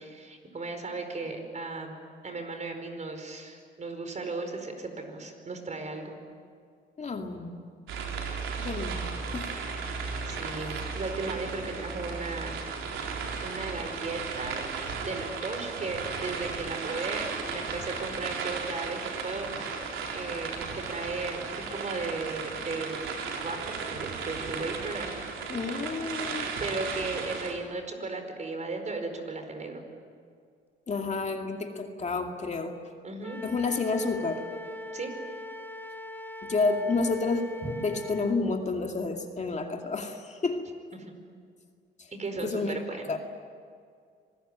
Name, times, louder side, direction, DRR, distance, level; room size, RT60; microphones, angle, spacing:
voice 1, 0.0-6.2 10.3-12.6 13.4-23.0 23.4-25.1 26.6-29.8 33.0-33.4 34.9-35.1 37.6-37.7 40.9-41.1 42.1-43.1, right 3 dB, 35° right, 6 dB, 4.8 m, -36 dB
voice 2, 7.0-7.7 8.6-9.5 25.5-26.5 30.9-32.8 33.4-34.4 36.4-37.5 37.8-40.7 42.0-42.1 42.4-42.8 43.1-43.2, left 3 dB, 35° left, 3 dB, 2.4 m, -30 dB
sound 1, 7.9-27.5, right 5 dB, 85° right, 3.9 m, -35 dB
Wind instrument woodwind instrument, 33.2-38.4, left 2 dB, 10° left, 1.9 m, -41 dB
26.0 x 19.0 x 9.1 m, 2.2 s
cardioid pair, 90°, 20 cm